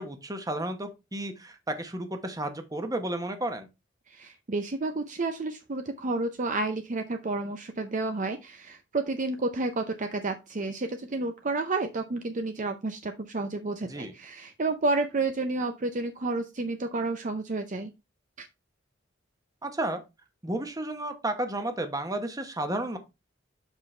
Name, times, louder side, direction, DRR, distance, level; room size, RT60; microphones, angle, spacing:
voice 1, 0.0-3.7 13.9-14.1 19.6-20.0 20.4-23.0, right 1 dB, 20° right, 7 dB, 1.1 m, -32 dB
voice 2, 4.1-17.9 18.4-18.5, right 3 dB, 40° right, 7 dB, 0.6 m, -30 dB
7.3 x 5.9 x 3.2 m, 0.24 s
head